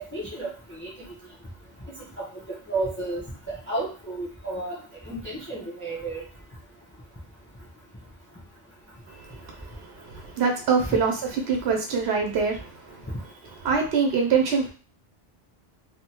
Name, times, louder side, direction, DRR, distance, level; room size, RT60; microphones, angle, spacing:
voice 1, 0.1-0.5 0.8-0.9 2.2-3.2 3.5-4.8 5.1-6.2 10.8-11.0, right 2 dB, 15° left, -5 dB, 0.8 m, -32 dB
voice 2, 9.1-12.7 13.6-14.7, right 5 dB, 90° right, 3 dB, 0.9 m, -25 dB
3.5 x 2.3 x 2.9 m, 0.36 s
omnidirectional pair, 1.1 m